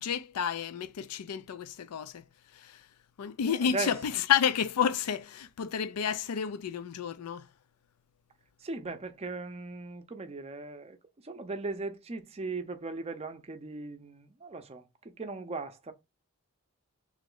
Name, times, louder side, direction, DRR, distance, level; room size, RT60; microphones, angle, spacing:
voice 1, 0.0-2.2 2.6-2.8 3.2-7.4, left 8 dB, 90° left, 0.4 m, -30 dB
voice 2, 3.6-3.9 8.6-11.0 11.2-15.9, right 3 dB, 30° right, 0.5 m, -38 dB
3.2 x 3.0 x 3.7 m
head